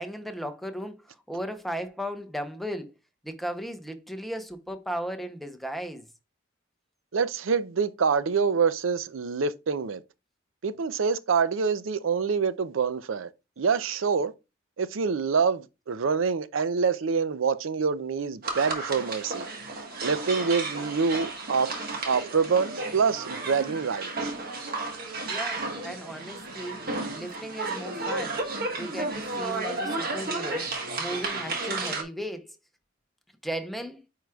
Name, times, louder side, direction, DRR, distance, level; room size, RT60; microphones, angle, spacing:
voice 1, 0.0-2.9 3.2-6.1 25.2-26.9 27.1-28.4 28.8-32.5 33.4-34.0, equal, ahead, 0.7 m, -36 dB
voice 2, 7.1-10.0 10.6-13.3 13.6-14.3 14.8-19.5 20.0-21.7 22.1-24.3, right 5 dB, 90° right, 0.5 m, -26 dB
sound 1, 18.4-32.0, right 3 dB, 50° right, 1.4 m, -33 dB
8.9 x 4.8 x 2.3 m
head